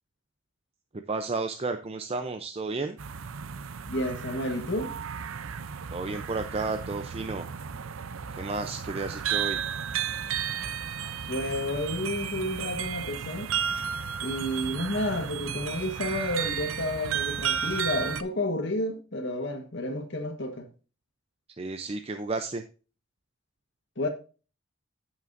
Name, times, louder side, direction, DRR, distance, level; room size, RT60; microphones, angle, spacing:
voice 1, 0.9-3.0 5.9-7.5 8.3-9.6 21.6-22.6, right 3 dB, 30° right, 0.5 m, -32 dB
sound 1, 3.0-18.2, right 8 dB, 90° right, 0.6 m, -33 dB
voice 2, 3.9-4.9 11.3-13.5 14.2-20.7 24.0-24.1, left 1 dB, 60° left, 1.3 m, -31 dB
15.0 x 5.9 x 2.6 m
head